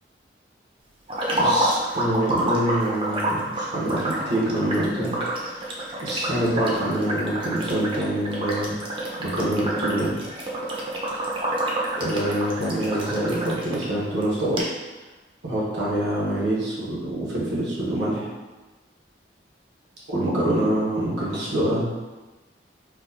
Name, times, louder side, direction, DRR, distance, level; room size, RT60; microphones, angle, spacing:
sound 1, 1.1-13.9 14.2-14.3 14.6-14.7, right 1 dB, 30° right, 0.5 m, -28 dB
voice 1, 1.3-5.1 5.5-5.7 6.0-10.1 12.0-14.6 15.4-18.3 20.1-21.9, right 1 dB, 85° right, -6 dB, 1.0 m, -25 dB
4.4 x 2.1 x 2.7 m, 1.2 s
head